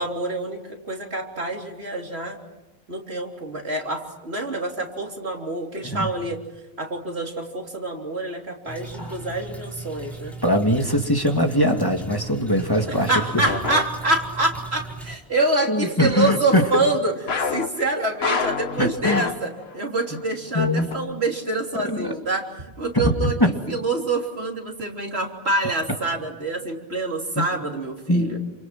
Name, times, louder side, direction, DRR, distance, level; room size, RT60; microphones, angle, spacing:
voice 1, 0.0-2.4 2.9-6.4 6.8-10.4 12.9-17.1 17.5-22.5 22.8-23.3 23.7-28.4, right 2 dB, 85° right, 1 dB, 3.8 m, -26 dB
sound 1, 8.7-15.1, right 4 dB, ahead, 4.7 m, -38 dB
voice 2, 10.4-13.1 15.7-16.7 18.8-19.3 20.5-21.0 21.8-22.1 23.0-23.1 23.4-23.5 27.4-27.5 28.1-28.3, left 1 dB, 20° left, 3 dB, 2.2 m, -21 dB
sound 2, 11.6-11.9 13.4-14.5 17.3-19.8 20.1-20.2 20.9-21.0, left 5 dB, 75° left, 1.6 m, -28 dB
29.0 x 27.5 x 6.1 m, 0.99 s
omnidirectional pair, 1.1 m